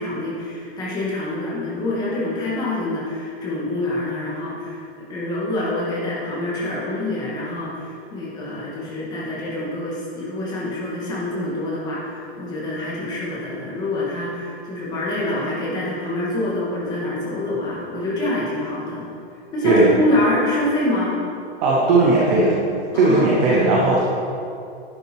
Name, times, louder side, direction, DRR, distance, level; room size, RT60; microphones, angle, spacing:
voice 1, 0.0-4.8 5.1-7.8 8.1-19.0 19.5-21.2 22.9-23.4, left 1 dB, 10° left, -6 dB, 1.9 m, -26 dB
voice 2, 21.6-22.6 22.9-24.0, right 3 dB, 10° right, -4 dB, 0.5 m, -16 dB
11.0 x 9.7 x 4.6 m, 2.6 s
supercardioid pair, 175°, 32 cm